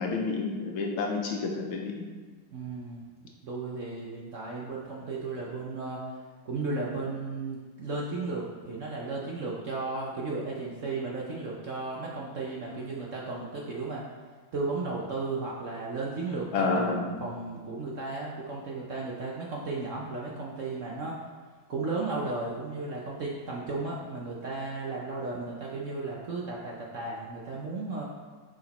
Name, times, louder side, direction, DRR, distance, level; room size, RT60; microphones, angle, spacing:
voice 1, 0.0-2.1 16.5-17.1, left 4 dB, 85° left, 1 dB, 1.8 m, -29 dB
voice 2, 2.5-3.0 3.4-6.1 6.4-14.0 14.5-21.2 21.7-28.0, right 3 dB, 55° right, -3 dB, 0.9 m, -34 dB
6.4 x 4.9 x 4.2 m, 1.5 s
omnidirectional pair, 2.1 m